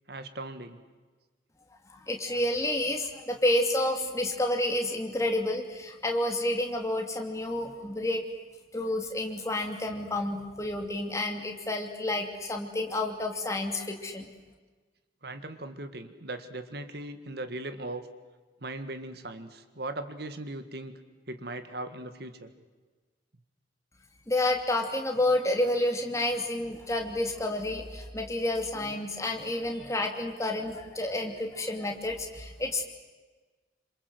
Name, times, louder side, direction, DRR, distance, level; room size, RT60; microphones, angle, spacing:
voice 1, 0.1-0.8 15.2-18.1 18.6-20.9 21.3-22.5, right 2 dB, 60° right, 9 dB, 1.8 m, -39 dB
voice 2, 1.9-8.2 8.7-14.3 24.3-32.8, left 1 dB, 15° left, 3 dB, 2.9 m, -29 dB
28.0 x 26.5 x 7.9 m, 1.3 s
head